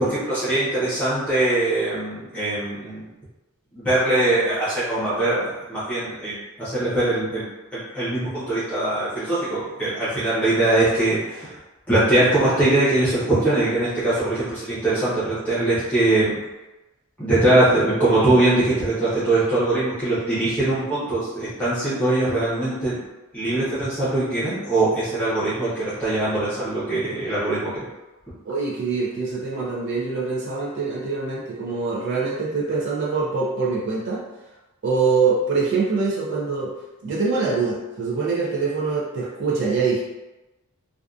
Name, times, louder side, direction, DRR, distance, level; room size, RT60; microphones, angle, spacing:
voice 1, 0.0-3.0 3.7-7.4 7.7-11.5 11.9-16.4 17.2-23.0 23.3-27.8, right 2 dB, 5° left, -12 dB, 0.7 m, -22 dB
voice 2, 28.5-34.2 34.8-36.7 37.0-40.0, right 4 dB, 55° right, -3 dB, 0.4 m, -24 dB
2.5 x 2.2 x 2.3 m, 1.1 s
head